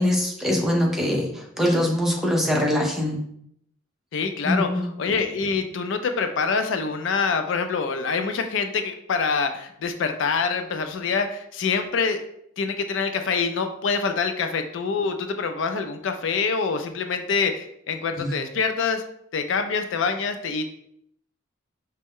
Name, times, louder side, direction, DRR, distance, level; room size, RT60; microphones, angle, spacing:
voice 1, 0.0-3.2 4.4-4.9 18.2-18.3, left 1 dB, ahead, -1 dB, 0.6 m, -23 dB
voice 2, 4.1-12.2 12.6-19.0 19.3-20.7, left 5 dB, 65° left, 7 dB, 0.4 m, -25 dB
5.0 x 2.2 x 3.5 m, 0.72 s
head